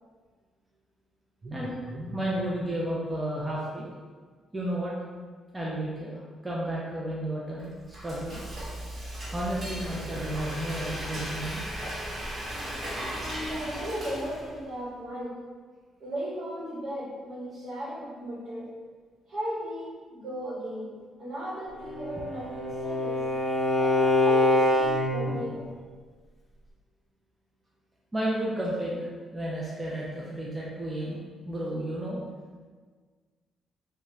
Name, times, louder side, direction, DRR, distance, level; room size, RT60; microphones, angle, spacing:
voice 1, 1.4-3.9 4.5-4.9 5.5-8.4 9.3-11.7 28.1-29.1 29.3-32.2, right 1 dB, 15° right, -6 dB, 0.4 m, -32 dB
Frying (food), 7.6-14.7, equal, 40° right, 1.1 m, -36 dB
voice 2, 13.2-15.4 16.0-18.7 19.3-23.3 23.8-25.7, equal, 60° right, -7 dB, 1.0 m, -36 dB
Bowed string instrument, 21.8-25.4, left 2 dB, 35° left, 0.7 m, -25 dB
2.3 x 2.2 x 3.1 m, 1.5 s
cardioid pair, 90°, 0 cm